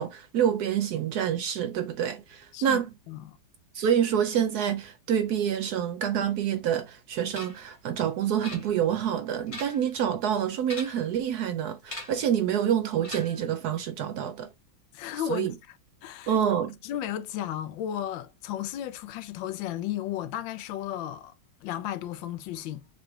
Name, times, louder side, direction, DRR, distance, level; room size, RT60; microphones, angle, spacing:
voice 1, 0.0-2.9 3.7-14.5 15.3-15.5 16.3-16.8, right 9 dB, 70° right, 1.0 m, -27 dB
voice 2, 2.5-3.4 14.9-15.5 16.0-16.4 16.8-21.3 21.6-22.8, left 11 dB, 85° left, 1.3 m, -34 dB
sound 1, 7.3-7.7 8.4-9.0 9.4-9.9 10.6-11.2 11.9-12.3 13.0-13.5, left 2 dB, 25° left, 0.8 m, -41 dB
6.7 x 2.3 x 3.1 m
omnidirectional pair, 2.1 m